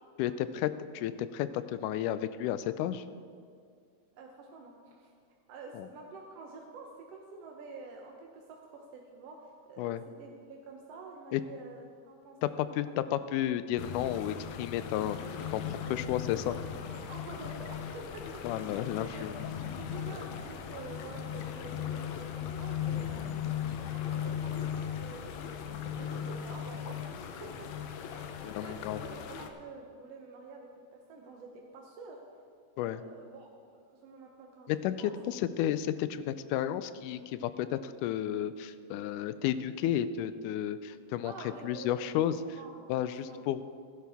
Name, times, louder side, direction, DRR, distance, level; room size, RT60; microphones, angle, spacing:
voice 1, 0.2-3.0 5.8-5.9 9.8-10.0 11.3-11.4 12.4-15.2 15.5-16.6 18.4-19.3 23.7-23.8 28.4-29.0 32.8-33.0 34.7-41.3 41.6-42.3 42.9-43.6, left 11 dB, 90° left, 13 dB, 2.1 m, -32 dB
voice 2, 4.2-5.1 5.5-12.4 12.7-12.8 15.8-16.1 16.9-18.7 19.0-25.5 26.0-27.7 28.0-30.7 31.1-31.5 31.7-32.2 32.8-33.5 33.9-34.7 35.0-35.1 41.2-42.1 42.5-43.5, right 3 dB, 65° right, 0 dB, 1.7 m, -48 dB
sound 1, 13.8-29.5, left 9 dB, 75° left, 1.8 m, -38 dB
16.0 x 10.5 x 3.5 m, 2.3 s
omnidirectional pair, 3.5 m